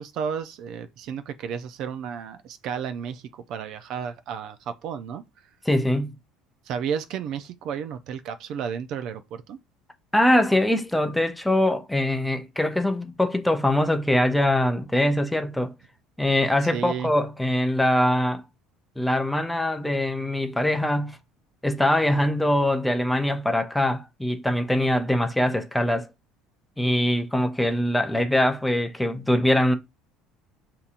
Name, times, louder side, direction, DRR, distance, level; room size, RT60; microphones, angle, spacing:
voice 1, 0.0-5.2 6.7-9.6 16.7-17.1, right 7 dB, 55° right, 0.5 m, -32 dB
voice 2, 5.7-6.2 10.1-15.7 16.2-18.4 19.0-21.2 21.6-26.1 26.8-29.8, left 1 dB, 5° left, 0.5 m, -23 dB
5.3 x 2.8 x 2.5 m
cardioid pair, 130°, 0 cm